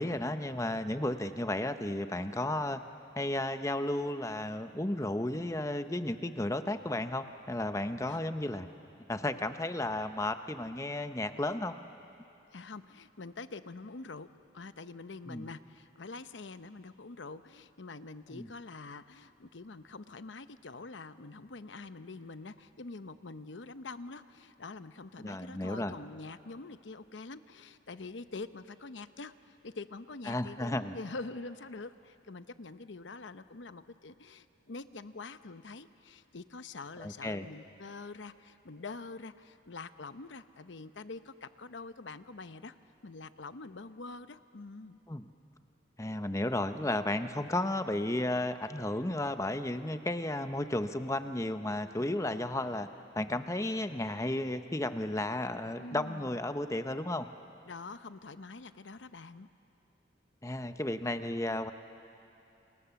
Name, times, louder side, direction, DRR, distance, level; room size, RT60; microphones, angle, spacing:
voice 1, 0.0-2.8 3.2-8.7 9.1-11.8 15.3-15.5 18.3-18.5 25.2-26.0 30.3-31.0 37.0-37.5 45.1-45.2 46.0-52.9 53.1-57.3 60.4-61.7, left 1 dB, 15° left, 9 dB, 0.8 m, -33 dB
voice 2, 12.5-14.3 14.5-42.7 43.0-45.0 55.8-56.4 57.7-59.5, left 3 dB, 80° left, 12 dB, 0.8 m, -45 dB
29.5 x 27.5 x 7.1 m, 2.8 s
head